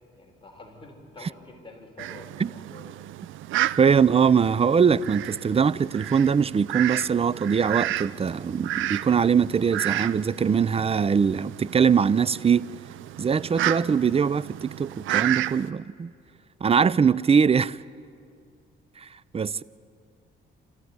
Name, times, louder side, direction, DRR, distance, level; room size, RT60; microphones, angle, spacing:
voice 1, 0.1-2.9, left 2 dB, 25° left, 4.2 m, -47 dB
Fowl, 2.0-15.7, right 15 dB, 80° right, 0.5 m, -32 dB
voice 2, 3.8-12.7 13.2-16.1 16.6-17.8 19.0-19.6, right 6 dB, 30° right, 0.5 m, -22 dB
27.0 x 14.5 x 9.6 m
cardioid pair, 90°, 20 cm